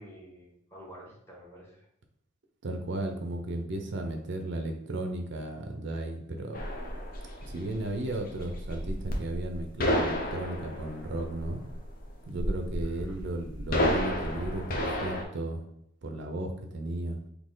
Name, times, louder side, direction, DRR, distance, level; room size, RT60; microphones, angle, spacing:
voice 1, 0.0-1.9 12.8-13.2, equal, 15° left, -4 dB, 1.3 m, -49 dB
voice 2, 2.6-6.6 7.5-11.6 12.3-15.6 16.0-17.2, right 2 dB, 60° right, 4 dB, 0.6 m, -35 dB
sound 1, 6.5-15.2, equal, 45° left, 0.8 m, -32 dB
4.2 x 2.8 x 3.8 m, 0.73 s
head